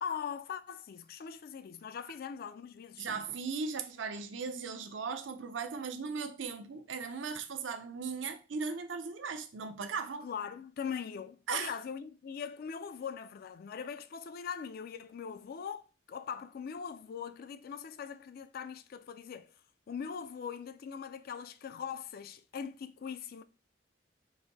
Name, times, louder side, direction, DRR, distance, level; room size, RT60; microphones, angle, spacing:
voice 1, 0.0-3.2 10.2-19.5 19.9-23.4, left 7 dB, 55° left, 0.3 m, -41 dB
voice 2, 3.0-10.3 11.5-11.7, right 5 dB, 90° right, 0.6 m, -37 dB
4.0 x 2.6 x 4.0 m
head